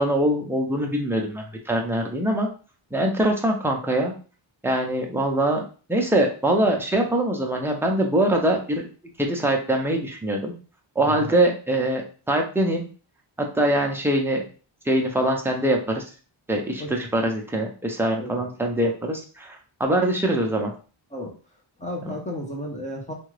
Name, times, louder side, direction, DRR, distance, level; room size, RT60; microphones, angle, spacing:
voice 1, 0.0-2.5 2.9-4.1 4.6-8.8 9.2-10.5 11.0-12.0 12.3-12.9 13.4-14.4 14.9-16.0 16.5-20.7 22.1-22.2, right 1 dB, 5° right, 1 dB, 0.5 m, -23 dB
voice 2, 16.8-17.1 18.2-18.5 21.1-21.3 21.8-23.1, left 1 dB, 15° left, 0 dB, 0.9 m, -33 dB
2.8 x 2.4 x 3.2 m, 0.38 s
wide cardioid pair, 110°, 48 cm